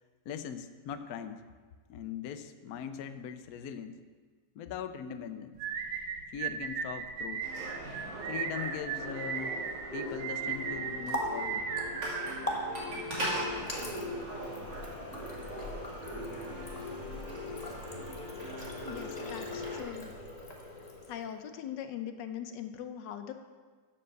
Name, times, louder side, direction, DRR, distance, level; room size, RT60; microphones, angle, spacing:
voice 1, 0.3-1.4 1.9-4.0 4.6-5.6 6.3-7.5 8.3-9.5 9.9-11.6, left 8 dB, 85° left, 9 dB, 0.8 m, -40 dB
sound 1, 5.6-13.0, right 6 dB, 80° right, 1.7 m, -37 dB
sound 2, 7.4-19.8, left 1 dB, 55° right, 3.3 m, -40 dB
Water tap faucet, 10.6-21.4, equal, 20° left, 1.1 m, -41 dB
voice 2, 18.8-20.1 21.1-23.3, left 9 dB, 70° left, 7 dB, 1.2 m, -41 dB
8.7 x 7.7 x 6.6 m, 1.5 s
omnidirectional pair, 2.4 m